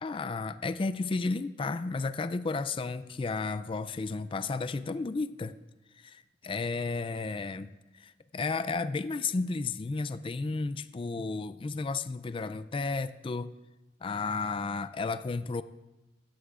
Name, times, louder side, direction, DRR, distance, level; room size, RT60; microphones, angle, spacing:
voice 1, 0.0-5.5 6.0-7.7 7.9-13.5 14.0-15.6, left 3 dB, 30° left, 13 dB, 0.3 m, -33 dB
16.5 x 14.0 x 2.5 m, 1.0 s
head